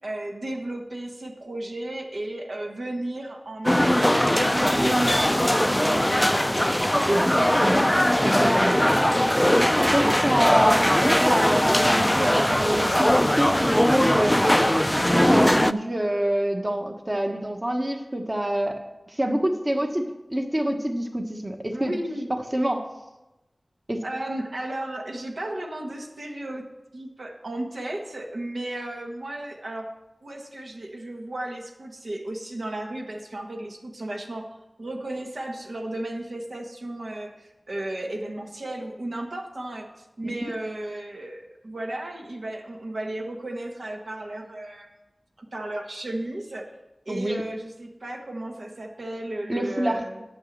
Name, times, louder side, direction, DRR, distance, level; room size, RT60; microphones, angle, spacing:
voice 1, 0.0-6.5 21.7-22.4 24.0-29.9 30.2-44.9 45.4-46.6 47.0-50.2, right 1 dB, 80° right, 1 dB, 1.3 m, -34 dB
sound 1, 3.6-15.7, left 1 dB, 15° left, 0.3 m, -20 dB
voice 2, 7.0-7.9 8.2-8.8 9.5-14.4 15.1-21.9 22.3-22.9 23.9-24.0 40.2-40.5 47.1-47.4 49.5-50.0, right 1 dB, 35° right, 4 dB, 1.2 m, -26 dB
9.1 x 6.4 x 7.3 m, 1.0 s
wide cardioid pair, 40°, 0 cm